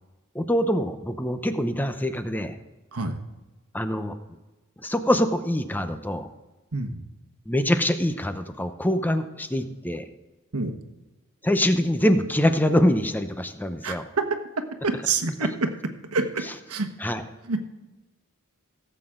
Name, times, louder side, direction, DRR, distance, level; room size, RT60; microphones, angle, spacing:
voice 1, 0.3-2.6 3.7-4.2 4.8-6.3 7.5-10.1 11.4-14.1 16.4-16.5 17.0-17.2, left 1 dB, 10° left, 9 dB, 0.7 m, -24 dB
voice 2, 6.7-7.0 10.5-10.7 13.8-14.0 14.8-15.7 16.1-16.4 16.7-16.9 17.5-17.6, right 3 dB, 90° right, 7 dB, 1.2 m, -26 dB
17.0 x 8.0 x 3.8 m, 1.1 s
head